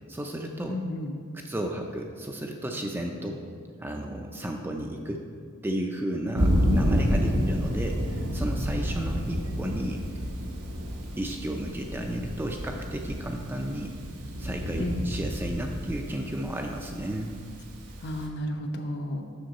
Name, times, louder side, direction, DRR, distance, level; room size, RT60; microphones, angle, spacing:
voice 1, 0.1-0.8 1.3-3.4 3.8-5.2 5.6-10.0 11.2-13.9 14.4-17.4, right 1 dB, 10° right, 2 dB, 0.3 m, -33 dB
voice 2, 0.7-1.2 7.2-7.6 14.8-15.1 18.0-19.2, left 1 dB, 50° left, 4 dB, 0.6 m, -32 dB
Thunder, 6.4-18.3, equal, 85° right, 0.9 m, -30 dB
6.5 x 6.1 x 4.1 m, 2.1 s
head